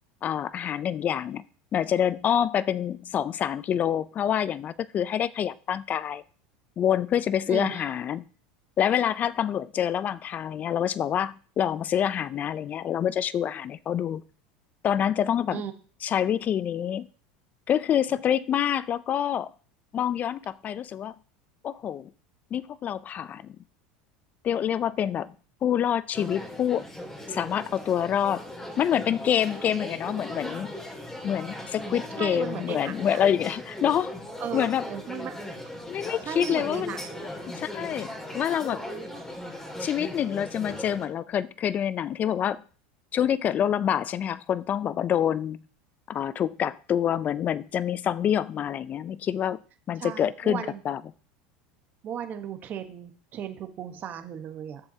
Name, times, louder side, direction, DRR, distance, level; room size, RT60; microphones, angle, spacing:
voice 1, 0.2-1.4 1.7-6.2 6.8-8.2 8.8-14.2 14.8-15.6 16.0-17.1 17.7-19.5 19.9-21.1 21.6-22.1 22.5-23.5 24.4-25.3 25.6-26.8 27.3-28.4 28.8-30.7 31.2-34.1 34.5-34.8 35.9-37.0 37.5-38.8 39.8-42.6 43.1-45.6 46.1-49.6 49.9-51.0, left 9 dB, 35° left, 18 dB, 0.5 m, -26 dB
voice 2, 7.5-7.8 15.5-15.7 32.2-33.2 34.4-35.4 36.0-37.2 50.0-50.8 52.0-54.8, right 8 dB, 40° right, 8 dB, 1.2 m, -36 dB
sound 1, 26.1-41.1, left 1 dB, 10° left, 2.4 m, -38 dB
11.5 x 6.9 x 2.8 m, 0.41 s
supercardioid pair, 105°, 5 cm